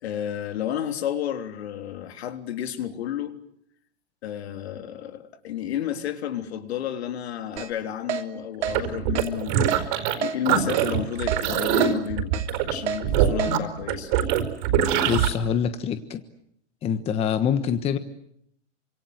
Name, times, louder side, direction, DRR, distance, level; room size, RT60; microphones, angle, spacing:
voice 1, 0.0-3.4 4.2-12.3 12.7-14.1, left 10 dB, 60° left, 3.6 m, -31 dB
Keyboard (musical), 7.6-7.7 8.1-8.2 8.6-8.8 9.2-9.3 9.7-9.8 10.2-10.4 10.7-10.9 11.3-11.4 11.8-11.9 12.3-12.5 12.9-13.0 13.4-13.5, right 10 dB, 65° right, 3.3 m, -28 dB
sound 1, 8.6-10.2 10.4-15.3, right 9 dB, 40° right, 4.7 m, -23 dB
voice 2, 14.9-16.2 16.8-18.0, left 8 dB, 15° left, 1.3 m, -25 dB
28.0 x 26.5 x 7.9 m
hypercardioid pair, 155°, 36 cm